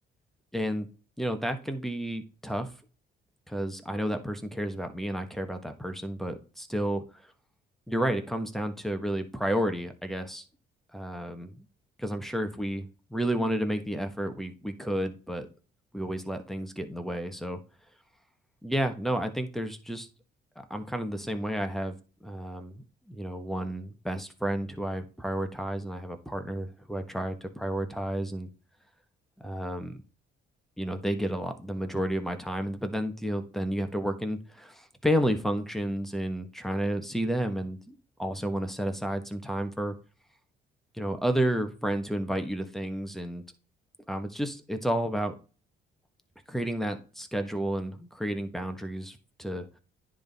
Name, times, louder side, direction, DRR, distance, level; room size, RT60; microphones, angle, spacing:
voice 1, 0.5-0.9 1.2-2.7 3.5-7.3 7.9-10.4 10.9-11.6 12.0-15.5 15.9-17.6 18.6-20.1 20.6-22.0 22.2-28.5 29.4-30.0 30.8-40.0 40.9-43.4 44.1-45.3 46.5-49.7, right 1 dB, ahead, 7 dB, 1.2 m, -31 dB
10.0 x 3.7 x 4.0 m, 0.35 s
cardioid pair, 90°, 20 cm